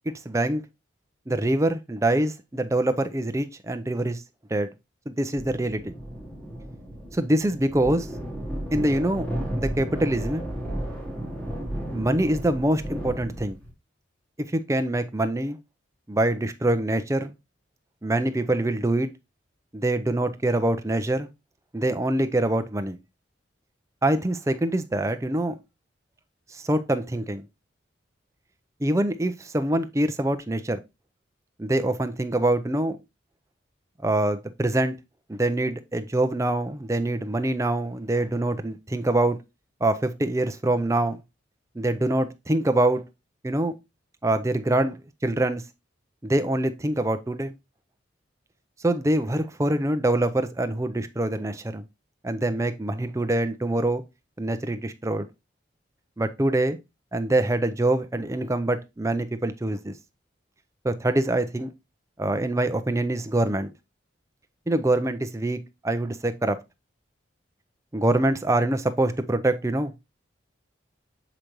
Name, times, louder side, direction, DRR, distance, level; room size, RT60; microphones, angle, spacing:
voice 1, 0.3-0.6 1.3-4.2 4.5-4.7 5.1-5.9 7.1-8.1 8.7-9.3 9.6-10.4 11.9-13.6 14.5-15.6 16.1-17.3 18.0-19.1 19.7-21.3 21.7-23.0 24.0-25.5 26.5-27.4 28.8-30.8 31.6-33.0 34.0-35.0 35.3-39.4 39.8-41.2 41.8-43.0 43.4-43.7 44.2-45.6 46.2-47.5 48.8-51.8 52.2-54.0 54.4-55.3 56.2-56.8 57.1-59.9 60.8-61.7 62.2-63.7 64.7-66.6 67.9-69.9, right 1 dB, 15° right, 0.5 m, -24 dB
sound 1, 5.3-13.7, equal, 10° left, 1.2 m, -34 dB
6.5 x 4.9 x 3.0 m
head